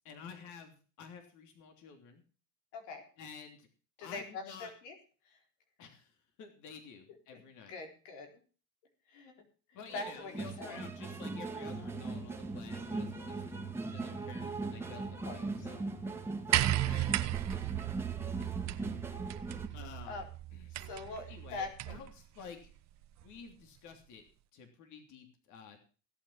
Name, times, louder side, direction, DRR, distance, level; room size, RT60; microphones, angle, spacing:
voice 1, 0.0-2.2 3.2-3.7 4.0-4.7 5.8-7.7 9.7-15.8 16.6-17.3 19.7-20.2 20.5-20.7 21.3-22.7 23.2-24.2 24.5-25.8, left 6 dB, 55° left, 5 dB, 3.2 m, -51 dB
voice 2, 2.7-3.0 4.0-4.9 5.2-5.4 7.7-8.3 9.1-9.3 9.7-10.9 15.3-15.4 18.7-18.9 20.1-20.3 20.7-22.0, left 3 dB, 90° left, 4 dB, 4.1 m, -43 dB
sound 1, 9.9-19.7, right 3 dB, 5° right, 2.0 m, -40 dB
sound 2, 11.7-19.4, equal, 35° right, 1.8 m, -60 dB
sound 3, 16.5-22.1 23.2-23.3, right 14 dB, 50° right, 1.1 m, -35 dB
17.0 x 8.9 x 5.7 m, 0.37 s
cardioid pair, 125°, 35 cm